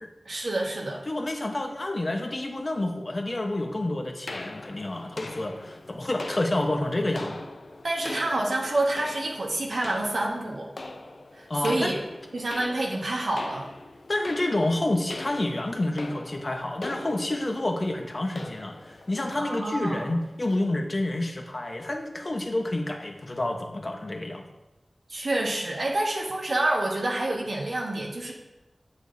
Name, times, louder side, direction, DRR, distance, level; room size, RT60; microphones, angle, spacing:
voice 1, 0.2-1.0 7.8-10.7 11.3-12.0 12.3-13.7 19.4-20.1 25.1-28.3, right 2 dB, 75° right, -1 dB, 1.2 m, -28 dB
voice 2, 1.1-7.4 11.5-11.9 14.1-24.5, left 1 dB, 40° left, 3 dB, 1.0 m, -29 dB
sound 1, 4.3-20.6, left 2 dB, 65° left, 0.6 m, -42 dB
8.5 x 7.1 x 2.7 m, 1.0 s
wide cardioid pair, 75°, 0 cm